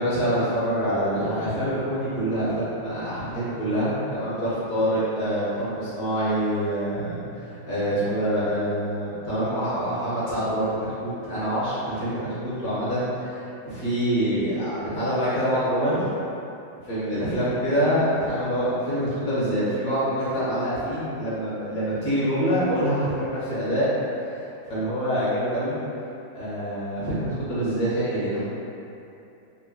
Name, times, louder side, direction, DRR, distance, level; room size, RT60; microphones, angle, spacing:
voice 1, 0.0-7.2 7.4-10.7 11.0-16.1 16.8-23.9 24.3-24.4 24.7-25.8 26.3-28.4, equal, 50° left, -11 dB, 1.7 m, -25 dB
3.7 x 2.1 x 3.9 m, 2.7 s
omnidirectional pair, 2.1 m